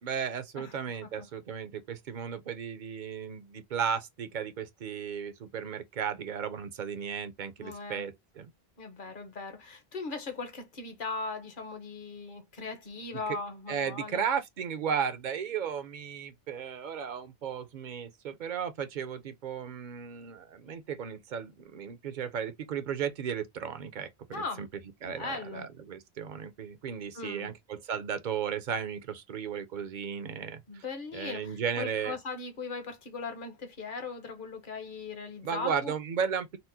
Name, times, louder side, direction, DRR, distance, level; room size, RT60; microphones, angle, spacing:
voice 1, 0.0-8.5 13.7-24.7 25.0-30.8 31.1-32.2 35.4-36.6, right 7 dB, 55° right, 0.7 m, -35 dB
voice 2, 7.6-8.0 8.8-14.2 24.3-24.6 25.0-25.7 27.1-27.5 30.7-35.9, left 4 dB, 55° left, 1.1 m, -39 dB
4.2 x 2.0 x 2.6 m
omnidirectional pair, 1.1 m